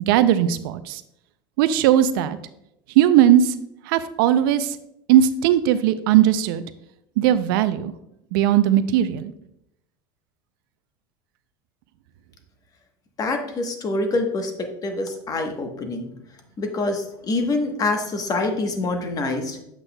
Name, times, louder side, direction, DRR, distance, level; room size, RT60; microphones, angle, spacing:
voice 1, 0.1-1.0 1.6-2.4 3.0-3.5 3.9-4.7 5.1-6.6 7.2-7.9 8.3-9.3, right 11 dB, 80° right, 13 dB, 0.4 m, -18 dB
voice 2, 13.2-16.1 16.6-19.6, left 2 dB, 30° left, 5 dB, 1.0 m, -25 dB
8.0 x 6.0 x 2.2 m, 0.81 s
supercardioid pair, 110°, 12 cm